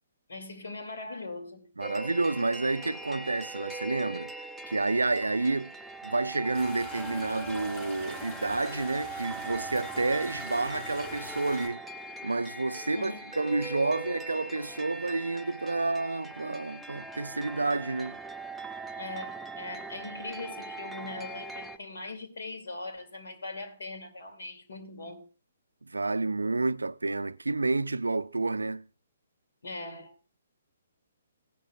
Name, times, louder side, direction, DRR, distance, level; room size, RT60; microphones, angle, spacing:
voice 1, 0.3-1.7 12.9-13.4 19.0-25.3 29.6-30.1, left 2 dB, 65° left, 2.4 m, -40 dB
sound 1, 1.8-21.8, right 3 dB, 5° right, 0.5 m, -41 dB
voice 2, 1.8-4.3 4.7-5.7 6.0-11.8 12.2-18.2 25.9-28.9, right 3 dB, 80° right, 0.4 m, -29 dB
sound 2, 6.5-11.7, left 2 dB, 30° left, 3.7 m, -45 dB
16.0 x 11.0 x 2.3 m
figure-of-eight pair, 130°, 0 cm